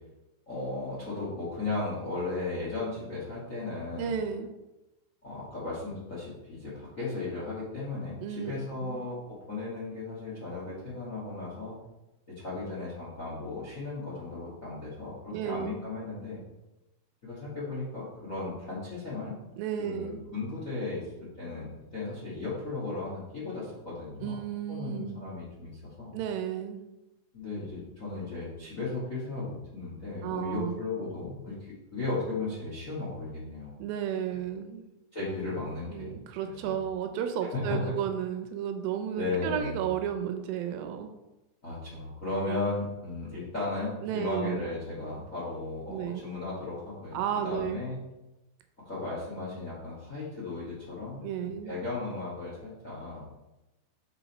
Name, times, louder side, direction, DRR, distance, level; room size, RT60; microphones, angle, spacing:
voice 1, 0.5-4.1 5.2-11.8 12.3-16.4 17.2-19.3 19.8-21.7 21.9-24.4 24.7-25.7 26.0-26.1 27.3-33.7 35.1-36.1 36.5-36.8 37.5-38.0 39.2-39.9 41.6-48.0 48.8-51.2 51.6-53.3, left 3 dB, 45° left, -7 dB, 1.0 m, -35 dB
voice 2, 4.0-4.5 8.2-8.5 8.8-9.0 15.3-15.8 19.6-20.2 24.2-25.2 26.1-26.8 30.2-30.8 33.8-34.8 35.9-41.1 42.4-42.7 44.0-44.6 45.9-46.2 47.1-47.8 51.2-51.7, right 9 dB, 80° right, 6 dB, 2.3 m, -33 dB
5.9 x 5.6 x 4.1 m, 0.99 s
omnidirectional pair, 4.3 m